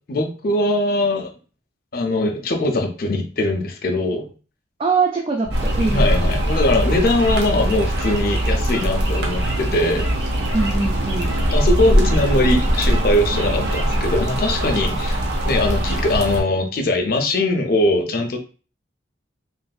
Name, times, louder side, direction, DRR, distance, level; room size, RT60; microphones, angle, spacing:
voice 1, 0.1-1.3 1.9-4.3 5.9-10.1 11.5-18.4, left 2 dB, 50° left, 4 dB, 0.5 m, -21 dB
voice 2, 4.8-6.3 10.5-11.3, right 4 dB, 30° right, 0 dB, 0.3 m, -23 dB
sound 1, 5.4-13.9, right 1 dB, 10° right, 0.7 m, -28 dB
sound 2, 5.5-16.4, equal, 60° right, 0.7 m, -22 dB
3.1 x 2.5 x 2.2 m, 0.38 s
head